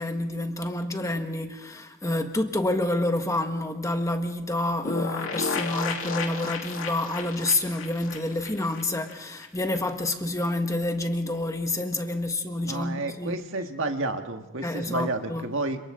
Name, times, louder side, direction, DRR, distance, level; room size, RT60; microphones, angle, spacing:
voice 1, 0.0-13.4 14.6-15.5, left 1 dB, 15° left, 1.5 m, -28 dB
sound 1, 4.9-9.5 9.7-9.8 10.1-10.2, left 4 dB, 70° left, 2.6 m, -33 dB
voice 2, 12.6-15.8, right 2 dB, 65° right, 1.7 m, -30 dB
30.0 x 27.0 x 3.8 m
head